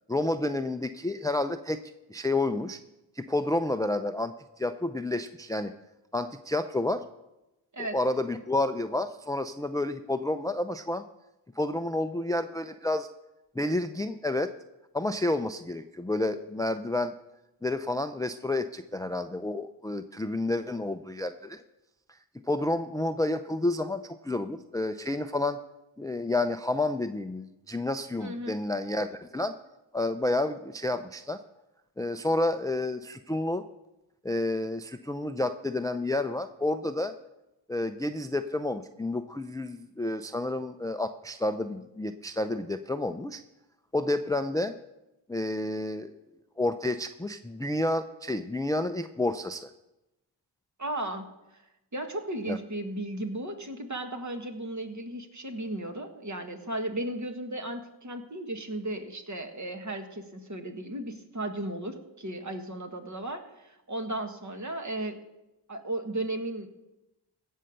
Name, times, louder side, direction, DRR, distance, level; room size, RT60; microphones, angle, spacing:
voice 1, 0.1-1.8 2.1-2.8 3.2-5.7 6.1-7.0 7.8-11.0 11.6-13.1 13.5-14.5 14.9-17.1 17.6-21.6 22.5-25.6 26.0-29.5 29.9-31.4 32.0-33.6 34.2-37.1 37.7-43.4 43.9-44.8 45.3-46.1 46.6-49.7 52.5-52.6, left 2 dB, 10° left, 9 dB, 0.5 m, -30 dB
voice 2, 28.2-28.6 50.8-51.6 51.9-65.2 65.7-66.7, right 1 dB, 35° right, 5 dB, 1.7 m, -35 dB
16.5 x 5.6 x 6.6 m, 0.96 s
cardioid pair, 40°, 48 cm